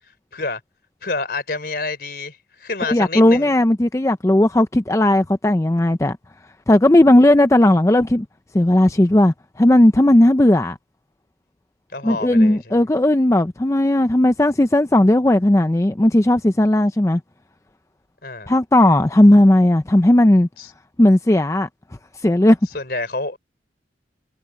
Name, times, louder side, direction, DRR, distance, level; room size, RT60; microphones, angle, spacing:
voice 1, 1.0-3.5 11.9-12.8 18.2-18.5 20.6-20.7 22.7-23.4, left 3 dB, 55° left, 4.0 m, -28 dB
voice 2, 2.9-6.2 6.7-8.3 8.5-10.8 12.0-17.2 18.5-20.5 21.0-21.7 22.2-22.6, left 1 dB, 15° left, 0.5 m, -15 dB
head